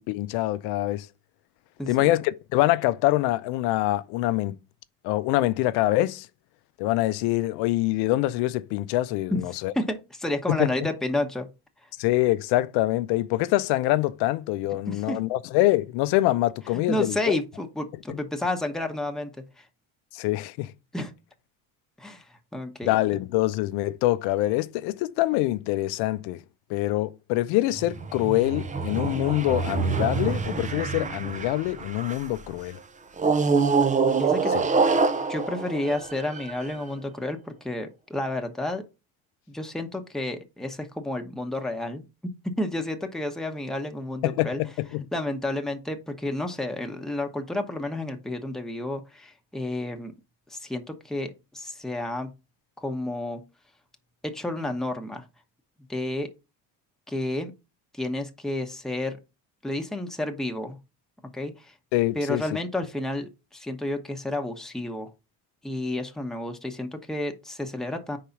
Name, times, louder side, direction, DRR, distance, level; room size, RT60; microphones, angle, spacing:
voice 1, 0.1-1.1 1.9-4.5 5.0-6.3 6.8-9.7 10.5-10.7 12.0-17.4 18.1-18.2 20.1-20.7 22.8-26.4 26.7-32.8 34.5-34.6 44.2-45.0 61.9-62.4, left 16 dB, 85° left, 0.6 m, -25 dB
voice 2, 1.8-2.1 9.3-9.4 9.7-11.5 11.8-11.9 14.9-15.2 16.7-19.7 20.9-21.1 22.0-22.9 34.2-34.5 35.3-38.8 39.5-42.0 42.6-44.6 45.1-50.1 50.5-52.3 52.8-53.4 54.2-55.3 55.9-56.3 57.1-57.5 57.9-59.2 59.6-60.8 61.3-61.7 62.1-65.1 65.6-68.2, left 1 dB, ahead, 1.0 m, -31 dB
sound 1, 27.7-32.4 33.2-36.8, right 4 dB, 20° right, 0.5 m, -26 dB
4.7 x 4.0 x 5.7 m
cardioid pair, 100°, 38 cm